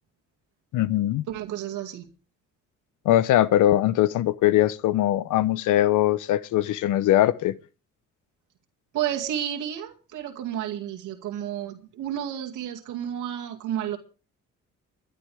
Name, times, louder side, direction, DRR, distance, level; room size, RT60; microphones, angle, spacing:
voice 1, 0.7-1.2 3.0-7.6, left 13 dB, 85° left, 0.8 m, -21 dB
voice 2, 1.3-2.1 8.9-14.0, right 10 dB, 85° right, 2.2 m, -31 dB
23.0 x 11.5 x 3.5 m
cardioid pair, 90°, 30 cm